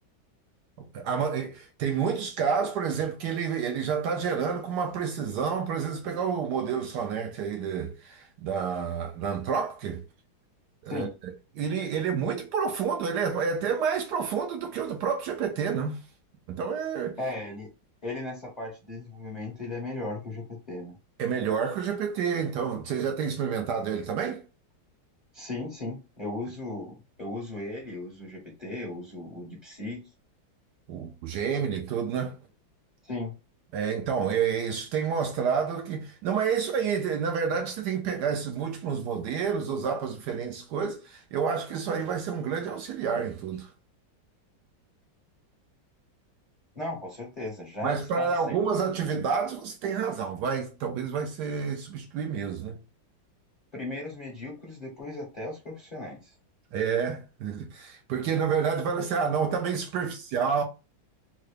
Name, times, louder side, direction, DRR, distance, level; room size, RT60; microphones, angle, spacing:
voice 1, 0.8-10.0 10.8-11.1 11.6-16.0 16.5-17.2 21.2-24.4 30.9-32.4 33.7-43.7 47.8-52.8 56.7-60.6, right 6 dB, 75° right, 1.0 m, -29 dB
voice 2, 17.2-17.7 18.0-21.0 25.3-30.0 33.0-33.3 46.7-48.8 53.7-56.3, left 2 dB, 35° left, 0.6 m, -36 dB
3.7 x 2.1 x 3.2 m
omnidirectional pair, 2.2 m